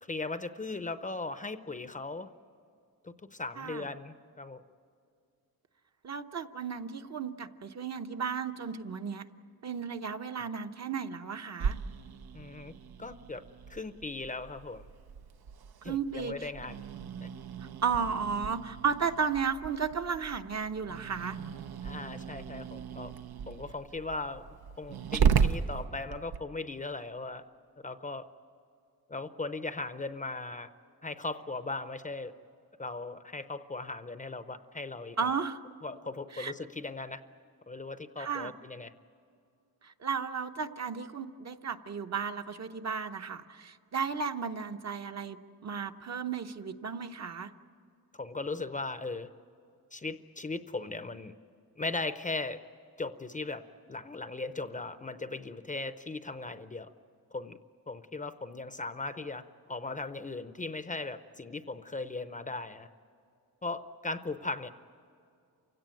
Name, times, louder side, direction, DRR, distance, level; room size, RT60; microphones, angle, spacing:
voice 1, 0.0-2.3 3.0-4.6 12.3-12.7 13.0-13.4 13.7-14.8 15.8-16.8 17.2-17.3 21.8-23.1 23.5-27.4 27.8-28.3 29.1-30.7 31.0-32.3 32.8-35.4 35.8-37.2 37.7-38.9 48.1-49.3 49.9-51.3 51.8-52.6 53.0-56.9 57.3-57.6 57.9-62.9 63.6-64.7, left 3 dB, 20° left, 11 dB, 0.6 m, -38 dB
voice 2, 3.6-3.9 6.0-9.3 9.6-11.8 15.8-16.5 17.8-21.4 35.2-35.6 36.3-36.5 38.2-38.5 39.8-47.5, right 6 dB, 45° right, 6 dB, 0.9 m, -34 dB
Growling, 11.6-26.4, right 7 dB, 85° right, 0.9 m, -35 dB
28.5 x 17.0 x 9.2 m, 2.4 s
wide cardioid pair, 145°, 36 cm